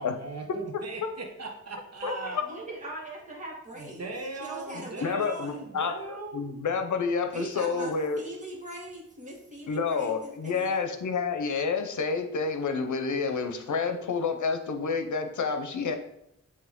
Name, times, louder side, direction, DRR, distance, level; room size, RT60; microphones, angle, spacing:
voice 1, 0.0-2.4 3.8-6.5, right 3 dB, 60° right, 2 dB, 1.2 m, -39 dB
voice 2, 2.0-4.0 4.3-5.6 7.3-10.9, equal, 25° right, -4 dB, 1.9 m, -40 dB
voice 3, 5.0-8.2 9.7-16.0, left 5 dB, 80° left, 7 dB, 0.7 m, -29 dB
7.9 x 3.2 x 3.7 m, 0.77 s
wide cardioid pair, 80°, 29 cm